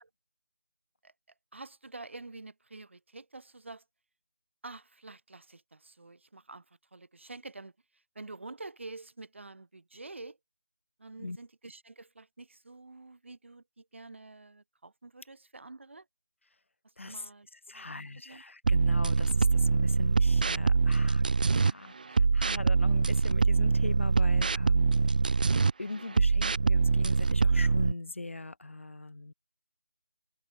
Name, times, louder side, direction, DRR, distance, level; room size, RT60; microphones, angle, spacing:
voice 1, 1.5-3.8 4.6-6.7 6.9-7.7 8.2-10.4 11.0-16.1 17.0-18.4, right 3 dB, 65° right, 7.1 m, -47 dB
voice 2, 17.0-21.2 21.6-24.9 25.8-29.3, left 2 dB, 70° left, 6.3 m, -40 dB
sound 1, 18.6-21.7 22.2-25.7 26.2-27.9, right 4 dB, 40° right, 1.5 m, -24 dB
figure-of-eight pair, 170°, 7 cm